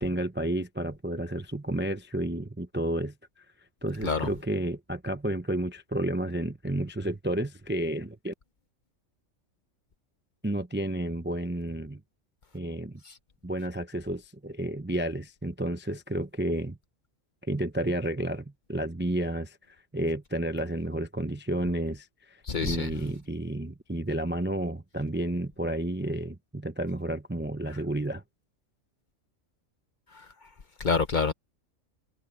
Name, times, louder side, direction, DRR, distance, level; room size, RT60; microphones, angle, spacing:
voice 1, 0.0-3.1 3.8-8.3 10.4-12.0 12.5-13.0 13.4-16.8 17.5-28.2, right 1 dB, 10° right, 0.5 m, -31 dB
voice 2, 22.5-22.9 30.8-31.3, left 5 dB, 40° left, 0.9 m, -26 dB
omnidirectional pair, 1.3 m